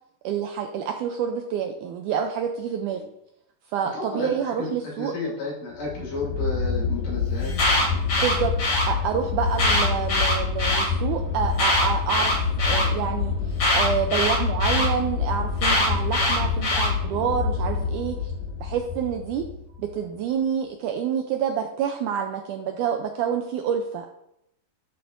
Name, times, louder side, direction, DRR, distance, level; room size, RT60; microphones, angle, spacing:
voice 1, 0.2-3.0 3.7-5.1 8.2-8.5 8.9-12.3 12.6-18.3 18.6-19.5 19.8-24.1, right 8 dB, 80° right, 4 dB, 1.8 m, -28 dB
voice 2, 3.9-7.5, left 2 dB, 60° left, -4 dB, 4.4 m, -32 dB
sound 1, 5.8-20.0, left 5 dB, 80° left, 4.1 m, -27 dB
Alarm, 7.4-8.9 9.5-10.9 11.5-12.9 13.6-14.9 15.6-16.9, left 1 dB, 45° left, 3.3 m, -22 dB
11.5 x 7.0 x 2.6 m, 0.79 s
omnidirectional pair, 4.1 m